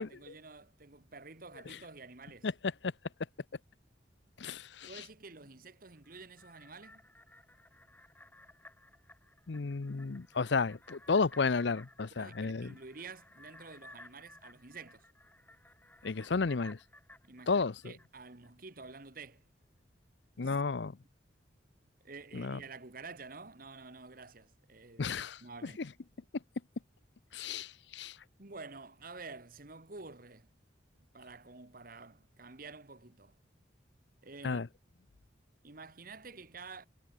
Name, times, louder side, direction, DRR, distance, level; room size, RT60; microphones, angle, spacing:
voice 1, 0.0-2.5 4.8-7.0 12.2-15.0 17.2-19.4 20.4-20.6 22.0-25.1 25.4-25.8 28.4-30.5 31.1-33.4 34.2-34.6 35.6-36.9, right 4 dB, 50° right, 1.7 m, -49 dB
voice 2, 4.4-4.9 9.5-12.7 16.0-16.8 17.5-17.9 20.4-20.9 22.3-22.6 25.0-25.4 25.8-25.9 27.3-28.1 34.4-34.7, left 4 dB, 70° left, 0.7 m, -32 dB
sound 1, 5.9-18.5 18.9-19.0, left 1 dB, 10° left, 6.3 m, -58 dB
head